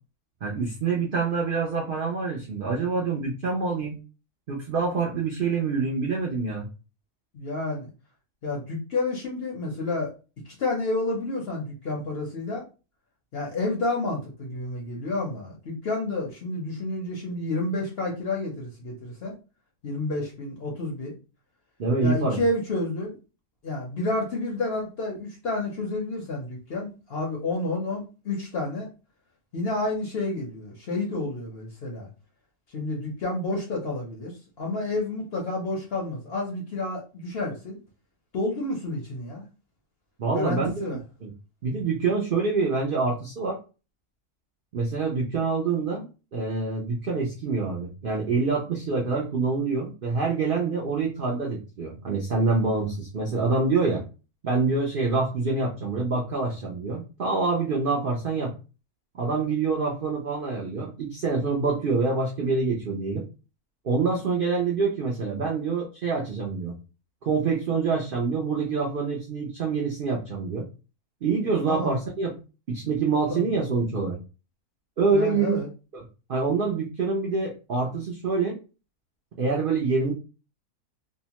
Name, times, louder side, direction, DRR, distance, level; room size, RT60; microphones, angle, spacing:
voice 1, 0.4-4.0 4.5-6.7 21.8-22.4 40.2-41.3 41.6-43.6 44.7-46.0 46.3-54.0 54.4-58.5 59.1-63.3 63.8-66.7 67.2-70.7 71.2-72.4 72.7-74.2 75.0-75.6 75.9-76.0 76.3-78.6 79.4-80.1, right 4 dB, 75° right, -2 dB, 0.5 m, -26 dB
voice 2, 7.3-7.9 8.4-10.1 10.5-12.6 13.3-19.3 19.8-21.1 22.0-23.2 23.6-28.9 29.5-32.1 32.7-34.3 34.6-37.8 38.3-39.4 40.3-41.0 71.7-72.0 73.3-73.4 75.1-75.7, left 2 dB, 55° left, -1 dB, 0.7 m, -30 dB
2.8 x 2.1 x 2.8 m, 0.32 s
omnidirectional pair, 1.6 m